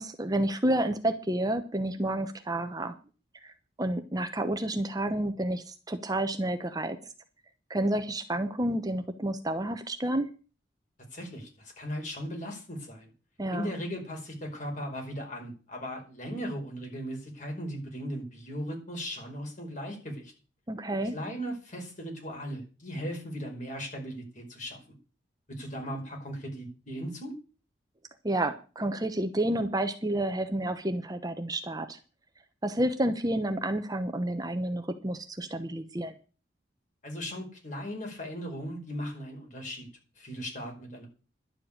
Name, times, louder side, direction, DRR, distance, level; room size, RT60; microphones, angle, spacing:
voice 1, 0.0-2.9 3.4-3.5 3.8-7.0 7.7-10.3 13.4-13.7 20.7-21.1 28.2-32.0 32.6-36.1, right 1 dB, 20° right, 8 dB, 1.0 m, -30 dB
voice 2, 11.1-13.1 13.5-20.3 21.1-25.0 25.5-27.4 37.0-39.9 40.2-41.1, equal, 45° left, 2 dB, 5.1 m, -37 dB
11.5 x 7.7 x 8.7 m, 0.36 s
head